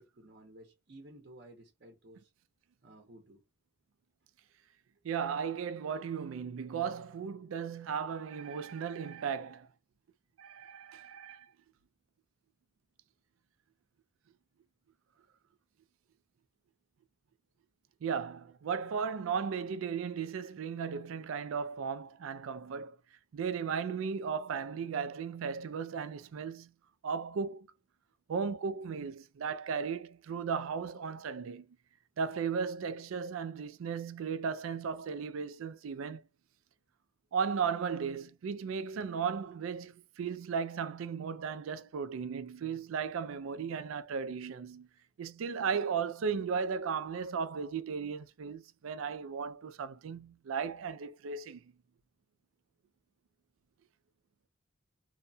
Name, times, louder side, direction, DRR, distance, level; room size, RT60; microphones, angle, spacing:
voice 1, 0.0-2.3 2.8-3.4, right 1 dB, 55° right, 0.7 m, -54 dB
voice 2, 5.0-9.7 10.4-11.5 18.0-23.0 23.3-26.7 27.0-27.7 28.3-31.7 32.2-36.2 37.3-44.9 45.2-51.6, right 6 dB, 90° right, 0.4 m, -36 dB
2.8 x 2.2 x 2.6 m
head